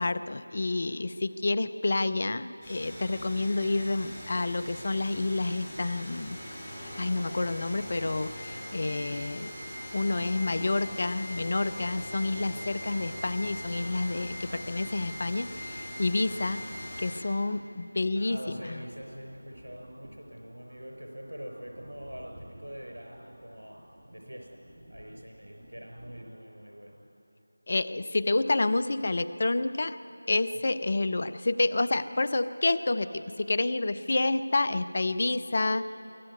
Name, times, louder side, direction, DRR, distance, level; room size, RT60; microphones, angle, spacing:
voice 1, 0.0-6.4 6.8-9.5 9.9-16.6 17.0-18.8 27.7-30.0 30.3-35.9, left 2 dB, 40° left, 13 dB, 0.7 m, -29 dB
sound 1, 2.6-17.1, left 1 dB, ahead, 5.9 m, -41 dB
voice 2, 18.1-24.6 24.9-27.0 30.5-30.7, equal, 80° right, 2 dB, 4.9 m, -44 dB
sound 2, 18.9-26.2, equal, 25° right, 3.2 m, -53 dB
23.0 x 16.0 x 9.6 m, 2.9 s
figure-of-eight pair, 170°, 0 cm